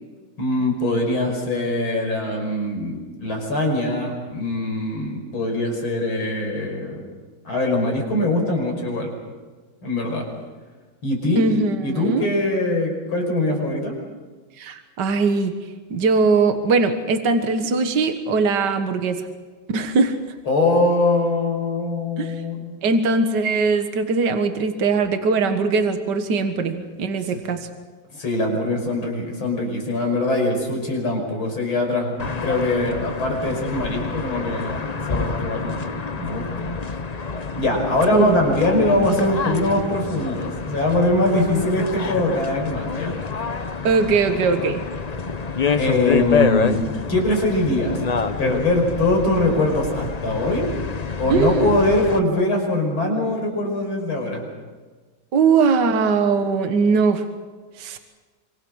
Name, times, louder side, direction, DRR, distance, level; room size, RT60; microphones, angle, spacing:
voice 1, 0.4-7.0 7.4-9.1 9.8-10.2 11.0-11.4 11.8-13.9 20.5-22.8 27.3-27.4 28.1-35.9 36.2-36.4 37.6-43.2 45.8-46.8 47.1-48.0 48.4-50.7 51.2-54.4, left 2 dB, 90° left, 1 dB, 6.3 m, -22 dB
voice 2, 11.4-12.3 14.6-15.5 15.9-19.3 19.7-20.2 22.2-22.4 22.8-27.7 38.1-38.4 43.8-44.8 51.3-51.8 55.3-57.2 57.8-58.0, right 4 dB, 60° right, 7 dB, 2.1 m, -20 dB
sound 1, 32.2-52.2, left 5 dB, 40° left, 0.6 m, -27 dB
26.0 x 25.5 x 6.4 m, 1.4 s
omnidirectional pair, 2.2 m